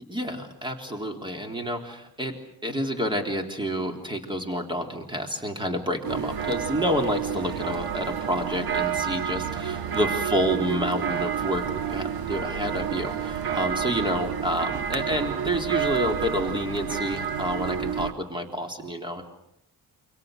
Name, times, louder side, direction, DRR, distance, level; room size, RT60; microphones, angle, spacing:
voice 1, 0.0-2.4 2.6-19.2, equal, 10° right, 3 dB, 3.6 m, -29 dB
sound 1, 6.0-18.1, right 8 dB, 60° right, 1.5 m, -29 dB
28.5 x 26.0 x 6.6 m, 0.79 s
cardioid pair, 140°, 40 cm